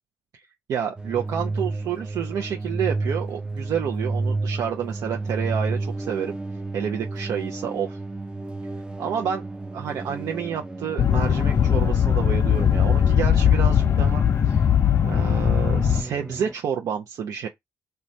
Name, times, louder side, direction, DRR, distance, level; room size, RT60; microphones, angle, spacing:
voice 1, 0.7-6.4 6.7-8.0 9.0-9.4 9.7-14.6 15.0-17.5, right 8 dB, 75° right, 0.5 m, -29 dB
sound 1, 1.0-16.5, right 3 dB, 15° right, 0.5 m, -32 dB
sound 2, 11.0-16.0, left 8 dB, 45° left, 0.3 m, -19 dB
3.1 x 2.2 x 2.6 m
cardioid pair, 60°, 6 cm